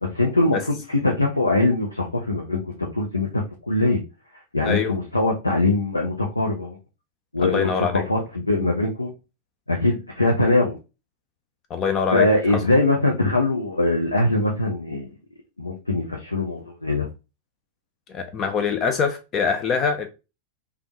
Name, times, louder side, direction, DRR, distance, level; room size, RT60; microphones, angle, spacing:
voice 1, 0.0-4.0 4.5-6.8 7.3-9.1 9.7-10.8 12.1-15.1 15.6-17.1, left 2 dB, 80° left, 0.6 m, -22 dB
voice 2, 4.6-4.9 7.4-8.1 11.7-12.6 18.1-20.1, left 5 dB, 30° left, 0.4 m, -24 dB
3.4 x 2.3 x 2.8 m
figure-of-eight pair, 90°, 0 cm